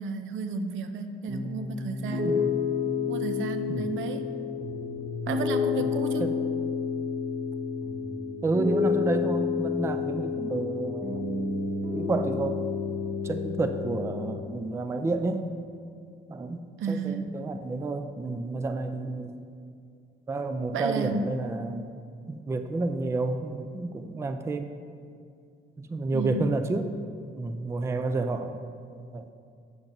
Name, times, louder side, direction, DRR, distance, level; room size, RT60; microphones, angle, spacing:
voice 1, 0.0-2.4 3.1-4.3 5.3-6.3 16.8-17.2 20.7-21.2 26.1-26.5, right 4 dB, 75° right, 8 dB, 0.5 m, -32 dB
Piano, 1.3-14.4, left 5 dB, 30° right, 1.4 m, -30 dB
voice 2, 2.2-2.6 3.7-4.0 6.2-6.4 8.4-11.3 11.9-12.6 13.2-15.5 16.3-19.5 20.3-21.9 22.3-24.7 25.8-26.9 27.4-28.6 29.1-29.3, right 3 dB, 15° right, 8 dB, 0.3 m, -30 dB
7.8 x 7.2 x 2.6 m, 2.3 s
cardioid pair, 90°, 20 cm